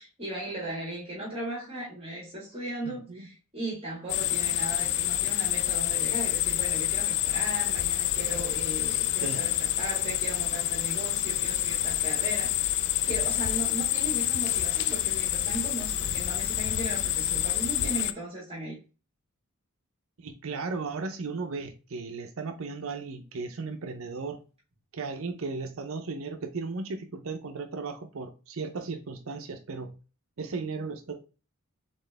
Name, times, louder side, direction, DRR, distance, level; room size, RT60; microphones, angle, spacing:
voice 1, 0.0-12.7 13.0-18.8, right 1 dB, 25° right, 1.6 m, -37 dB
voice 2, 2.8-3.3 8.9-9.5 20.2-24.4 24.9-30.0 30.4-31.2, right 4 dB, 65° right, 0.6 m, -36 dB
sound 1, 4.1-18.1, left 12 dB, 50° left, 0.4 m, -28 dB
4.3 x 3.6 x 3.3 m
head